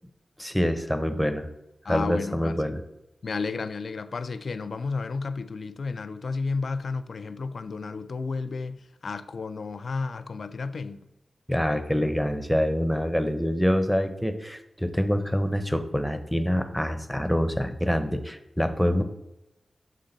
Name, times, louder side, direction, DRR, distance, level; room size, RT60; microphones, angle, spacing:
voice 1, 0.4-1.5 1.8-2.8 11.5-19.0, equal, ahead, 0.7 m, -26 dB
voice 2, 1.8-2.6 3.2-11.1 16.7-17.0, left 4 dB, 75° left, 0.3 m, -32 dB
7.3 x 3.7 x 3.9 m
cardioid pair, 50°, 0 cm